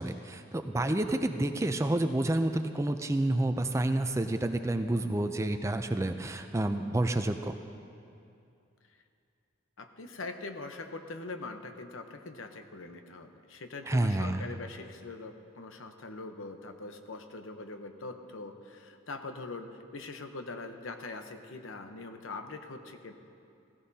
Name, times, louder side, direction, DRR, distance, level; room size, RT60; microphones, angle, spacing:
voice 1, 0.0-7.6 13.9-14.5, right 1 dB, 15° right, 8 dB, 0.4 m, -29 dB
voice 2, 9.8-23.1, left 3 dB, 90° left, 6 dB, 0.9 m, -42 dB
17.0 x 16.0 x 2.8 m, 2.6 s
head